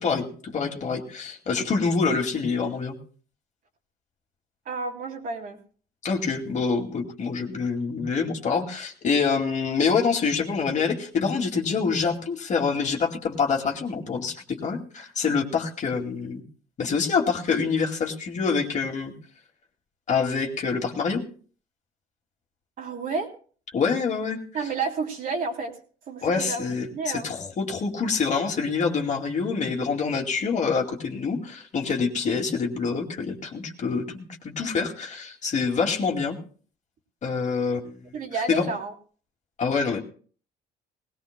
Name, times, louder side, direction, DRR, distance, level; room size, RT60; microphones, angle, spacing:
voice 1, 0.0-3.0 6.0-16.4 16.8-19.1 20.1-21.2 23.7-24.4 26.2-36.4 37.2-38.0 38.5-38.7 39.6-40.0, left 5 dB, 45° left, 2 dB, 2.3 m, -26 dB
voice 2, 4.6-5.6 22.8-23.3 24.5-25.8 26.1-27.3 38.1-38.9, right 4 dB, 55° right, 1 dB, 3.1 m, -31 dB
20.0 x 17.5 x 2.2 m, 0.43 s
cardioid pair, 110°, 17 cm